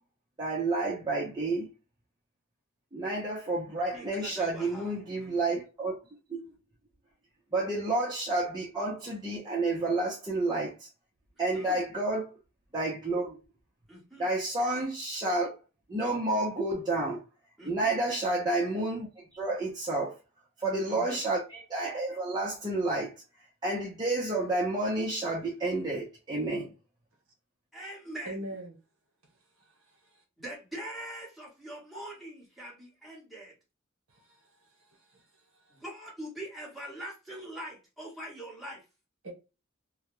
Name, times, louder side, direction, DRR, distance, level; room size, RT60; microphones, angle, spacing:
voice 1, 0.4-1.7 2.9-6.0 6.3-6.4 7.5-10.9 11.4-12.3 12.7-13.4 14.2-15.5 15.9-17.2 17.6-20.1 20.6-23.1 23.6-26.7, right 2 dB, 20° right, 0.6 m, -30 dB
voice 2, 3.9-5.4 11.5-11.8 13.9-14.3 17.6-18.0 20.9-21.2 27.7-28.3 30.4-33.5 35.7-38.8, right 1 dB, ahead, 1.0 m, -43 dB
voice 3, 20.6-21.1 28.2-28.8 29.2-30.2 34.1-35.8 39.2-39.3, right 1 dB, 70° right, 1.0 m, -45 dB
2.3 x 2.0 x 2.9 m
head